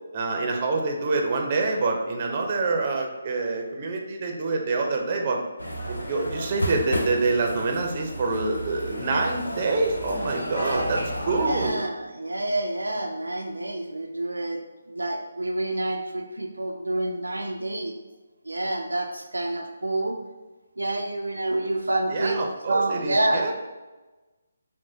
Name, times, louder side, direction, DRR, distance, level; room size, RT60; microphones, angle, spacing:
voice 1, 0.1-5.4 5.9-11.8 22.1-23.5, right 3 dB, 35° right, 2 dB, 0.6 m, -26 dB
sound 1, 5.6-11.7, equal, 75° left, 0.9 m, -32 dB
voice 2, 11.3-14.6 14.9-17.9 18.5-20.2 20.8-22.4 22.7-23.5, right 2 dB, 85° right, 2 dB, 0.4 m, -28 dB
6.0 x 2.2 x 2.7 m, 1.2 s
figure-of-eight pair, 150°, 0 cm